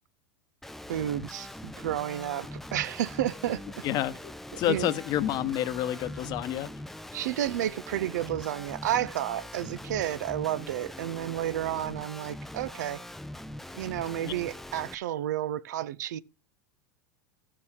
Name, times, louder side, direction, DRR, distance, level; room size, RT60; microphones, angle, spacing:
Guitar, 0.6-14.9, left 1 dB, 5° left, 0.4 m, -42 dB
voice 1, 0.9-3.6 4.7-4.9 7.1-13.0 13.7-16.2, right 12 dB, 80° right, 0.5 m, -31 dB
voice 2, 3.8-6.7 14.2-14.3, left 12 dB, 45° left, 0.9 m, -29 dB
13.0 x 6.6 x 3.6 m
hypercardioid pair, 110°, 9 cm